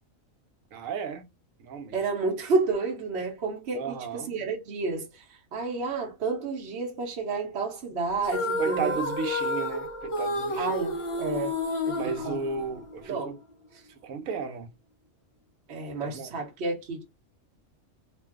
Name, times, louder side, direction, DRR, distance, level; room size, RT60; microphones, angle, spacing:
voice 1, 0.7-1.3 1.6-2.0 3.7-4.4 8.6-10.7 12.0-13.4 14.0-14.7 16.0-16.3, right 6 dB, 80° right, 1.0 m, -34 dB
voice 2, 1.9-9.0 10.6-11.6 11.9-12.4 13.0-13.3 13.7-13.8 15.7-17.0, right 4 dB, 55° right, 1.0 m, -30 dB
sound 1, 8.2-13.1, left 2 dB, 40° left, 0.5 m, -30 dB
2.6 x 2.3 x 3.4 m
omnidirectional pair, 1.4 m